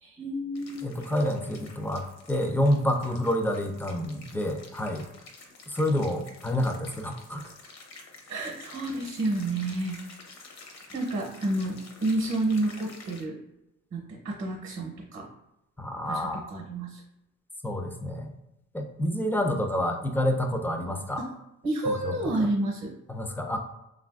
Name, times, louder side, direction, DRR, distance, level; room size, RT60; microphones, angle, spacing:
voice 1, 0.0-0.8 8.3-10.0 10.9-13.4 13.9-15.3 16.1-17.0 21.2-21.3 21.6-22.9, right 2 dB, 45° right, -1 dB, 0.7 m, -30 dB
sound 1, 0.5-13.2, left 3 dB, 60° left, 0.7 m, -49 dB
voice 2, 0.8-5.1 5.7-7.4 15.8-16.4 17.6-18.3 18.7-21.2 21.9-22.5 23.1-23.6, left 1 dB, 5° left, 4 dB, 0.3 m, -28 dB
3.1 x 2.4 x 2.3 m, 0.88 s
cardioid pair, 90°, 30 cm